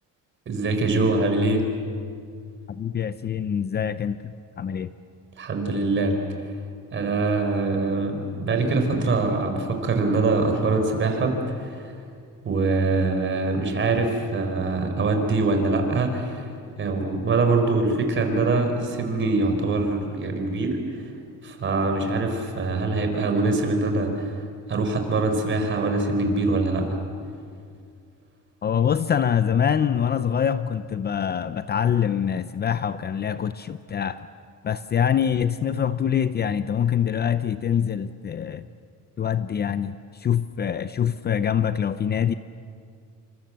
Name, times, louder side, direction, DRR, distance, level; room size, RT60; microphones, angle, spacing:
voice 1, 0.5-1.7 5.4-6.1 6.9-11.9 12.4-16.4 16.8-21.0 21.4-24.4 24.7-26.9, right 3 dB, 40° right, 5 dB, 4.5 m, -23 dB
voice 2, 2.7-4.3 4.6-4.9 28.6-34.3 34.6-38.7 39.2-42.3, left 8 dB, 30° left, 12 dB, 0.6 m, -24 dB
28.5 x 25.5 x 7.6 m, 2.2 s
cardioid pair, 145°, 31 cm